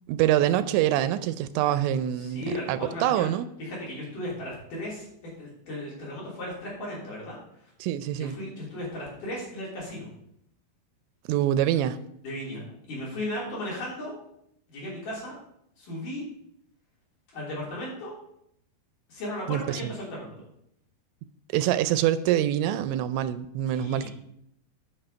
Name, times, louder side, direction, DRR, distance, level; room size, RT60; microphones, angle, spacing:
voice 1, 0.1-3.5 7.8-8.4 11.3-12.0 19.5-19.8 21.5-24.1, right 12 dB, 85° right, 12 dB, 2.8 m, -25 dB
voice 2, 2.2-3.3 3.6-5.1 5.4-7.7 8.2-10.1 12.2-14.1 14.7-15.3 15.8-16.2 17.3-18.2 19.1-20.3 23.7-24.1, left 1 dB, 50° left, -5 dB, 4.5 m, -36 dB
8.9 x 5.9 x 5.5 m, 0.74 s
omnidirectional pair, 5.2 m